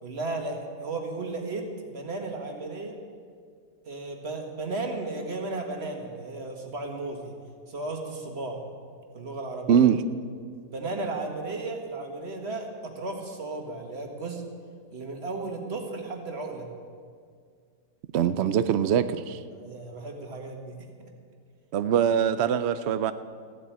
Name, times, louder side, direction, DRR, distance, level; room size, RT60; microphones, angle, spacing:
voice 1, 0.0-3.0 3.9-7.3 7.7-8.6 9.1-9.9 10.7-14.4 14.9-16.7 19.5-21.1, right 3 dB, 40° right, 3 dB, 1.8 m, -34 dB
voice 2, 9.7-10.0 18.1-19.4 21.7-23.1, right 8 dB, 85° right, 12 dB, 0.5 m, -23 dB
15.0 x 7.9 x 9.3 m, 2.1 s
omnidirectional pair, 1.8 m